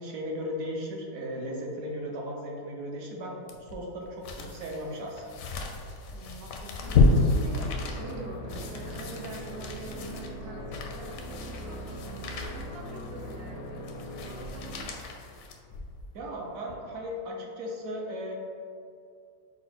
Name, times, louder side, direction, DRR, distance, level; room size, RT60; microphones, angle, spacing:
voice 1, 0.0-3.3 3.6-5.3 16.1-18.3, equal, 60° right, -1 dB, 1.0 m, -36 dB
sound 1, 3.5-16.1 16.6-16.7, left 3 dB, 70° left, 0.8 m, -31 dB
voice 2, 6.1-13.8 14.2-15.0, right 3 dB, 85° right, -1 dB, 0.5 m, -45 dB
sound 2, 6.8-14.8, equal, 90° left, 1.3 m, -40 dB
5.6 x 2.1 x 4.2 m, 2.4 s
omnidirectional pair, 1.9 m